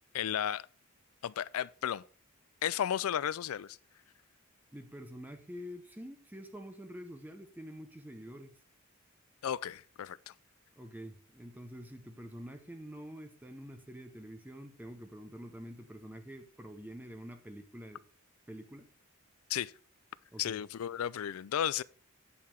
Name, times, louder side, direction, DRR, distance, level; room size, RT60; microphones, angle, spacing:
voice 1, 0.1-0.6 1.2-2.0 2.6-3.8 9.4-10.3 19.5-19.7 20.4-21.8, left 9 dB, 75° left, 0.4 m, -34 dB
voice 2, 4.7-8.5 10.8-18.0 18.5-18.8 20.3-20.6, equal, 10° right, 0.8 m, -47 dB
8.6 x 5.7 x 4.5 m
head